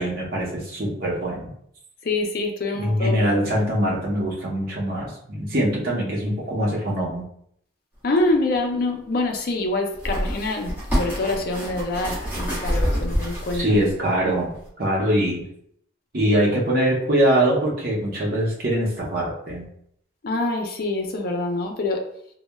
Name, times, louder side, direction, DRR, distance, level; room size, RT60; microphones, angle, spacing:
voice 1, 0.0-1.5 2.8-7.2 13.5-14.5 14.8-15.4 16.1-19.7, right 1 dB, 50° right, -4 dB, 0.7 m, -23 dB
voice 2, 2.0-3.4 8.0-13.8 20.2-22.0, left 2 dB, 50° left, 2 dB, 0.4 m, -25 dB
sound 1, 8.2-8.3 9.9-13.9 14.5-14.7, equal, 10° right, 1.0 m, -26 dB
3.1 x 2.0 x 2.2 m, 0.69 s
head